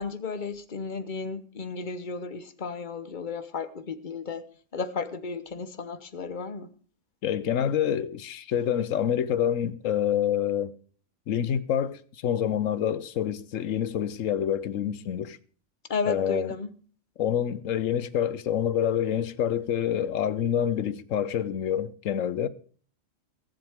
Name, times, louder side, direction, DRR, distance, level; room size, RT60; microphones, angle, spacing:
voice 1, 0.0-4.4 4.7-6.7 15.9-16.7, left 4 dB, 40° left, 1.0 m, -33 dB
voice 2, 7.2-10.7 11.3-15.4 16.1-16.5 17.2-22.5, left 9 dB, 80° left, 1.1 m, -27 dB
23.0 x 7.7 x 3.5 m
omnidirectional pair, 1.3 m